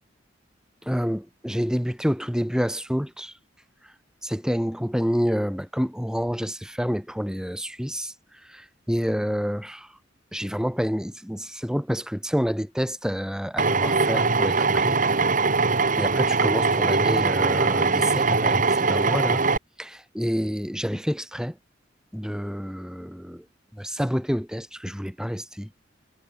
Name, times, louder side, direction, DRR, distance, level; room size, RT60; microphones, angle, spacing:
voice 1, 0.9-3.3 4.2-8.1 8.5-9.9 10.3-15.0 16.0-19.4 19.8-21.5 22.1-23.4 23.8-25.7, equal, 5° right, 6.2 m, -28 dB
Drill, 13.6-19.6, right 4 dB, 45° right, 2.7 m, -21 dB
head